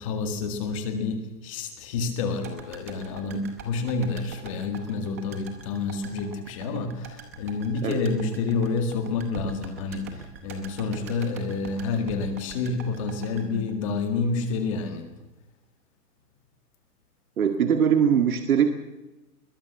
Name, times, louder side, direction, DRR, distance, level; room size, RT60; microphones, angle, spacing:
voice 1, 0.0-15.1, left 4 dB, 20° left, 7 dB, 2.0 m, -29 dB
sound 1, 2.4-14.6 14.9-15.0, right 5 dB, 10° right, 0.8 m, -43 dB
voice 2, 17.4-18.7, right 8 dB, 65° right, 6 dB, 2.0 m, -21 dB
21.5 x 19.5 x 7.2 m, 1.0 s
hypercardioid pair, 180°, 47 cm